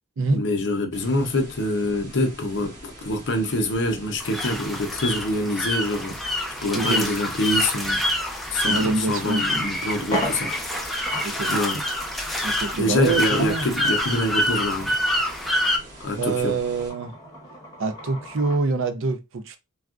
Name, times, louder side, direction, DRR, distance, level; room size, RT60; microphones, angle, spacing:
voice 1, 0.3-6.2 6.6-8.0 8.5-10.8 11.5-11.8 12.7-15.0 16.0-16.6, left 1 dB, 55° left, 0.6 m, -25 dB
sound 1, 0.9-16.9, right 1 dB, 35° right, 1.0 m, -44 dB
sound 2, 4.2-15.8, left 1 dB, ahead, 0.4 m, -26 dB
voice 2, 6.7-7.1 8.6-9.6 11.2-11.5 12.4-13.7 16.2-17.1 17.8-19.6, right 3 dB, 60° right, 0.5 m, -25 dB
sound 3, 10.0-18.7, equal, 20° left, 1.0 m, -37 dB
3.5 x 2.3 x 2.4 m
head